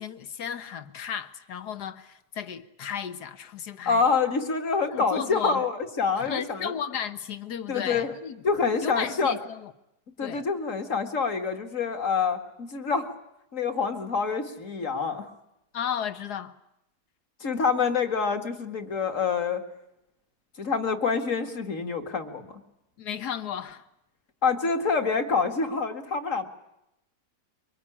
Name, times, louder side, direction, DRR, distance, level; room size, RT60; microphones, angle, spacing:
voice 1, 0.0-4.0 4.9-5.6 6.2-8.4 8.8-9.7 10.2-10.4 15.7-16.6 23.0-23.8, left 8 dB, 70° left, 1.8 m, -34 dB
voice 2, 3.9-6.7 7.7-8.1 8.4-9.3 10.2-13.1 13.5-15.3 17.4-19.6 20.6-22.5 24.4-26.5, left 5 dB, 50° left, 2.4 m, -26 dB
24.0 x 23.5 x 10.0 m
omnidirectional pair, 1.8 m